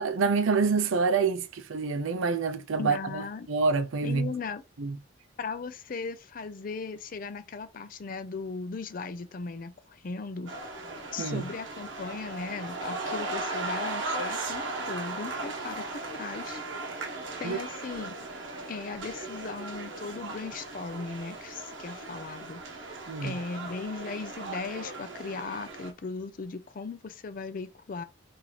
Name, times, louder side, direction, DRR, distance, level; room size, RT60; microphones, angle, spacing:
voice 1, 0.0-4.3 4.8-5.0 11.2-11.5 17.4-17.6 23.1-23.4, right 4 dB, 90° right, 0.5 m, -27 dB
voice 2, 2.8-3.5 4.0-4.6 5.4-10.6 11.1-16.6 17.4-18.1 18.7-22.6 23.2-28.0, left 4 dB, 45° left, 0.4 m, -37 dB
sound 1, 10.5-25.9, right 2 dB, 70° right, 0.9 m, -37 dB
2.9 x 2.6 x 3.9 m
head